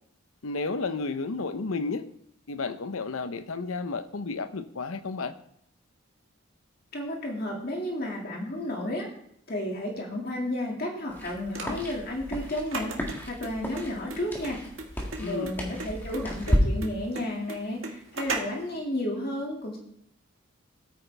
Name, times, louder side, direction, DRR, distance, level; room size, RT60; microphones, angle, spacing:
voice 1, 0.4-2.1 2.5-5.3 15.2-15.5, left 4 dB, 85° left, 0.8 m, -32 dB
voice 2, 6.9-9.1 9.5-14.6 15.2-19.8, left 1 dB, 45° left, 2.2 m, -32 dB
sound 1, 11.1-16.6, equal, 10° left, 1.8 m, -33 dB
sound 2, 11.5-18.7, right 3 dB, 75° right, 1.7 m, -37 dB
13.5 x 9.0 x 3.4 m
head